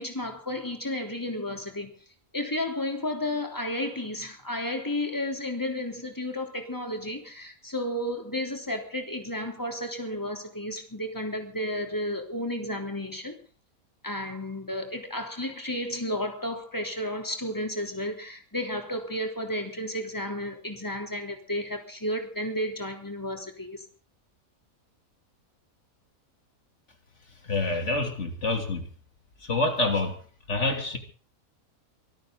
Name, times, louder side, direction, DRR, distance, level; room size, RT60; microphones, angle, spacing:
voice 1, 0.0-1.9 2.3-13.3 14.0-23.8, left 1 dB, 15° left, 3.4 m, -32 dB
voice 2, 27.4-28.9 29.4-30.2 30.5-31.0, left 2 dB, 50° left, 3.2 m, -27 dB
25.0 x 13.5 x 3.9 m
omnidirectional pair, 1.5 m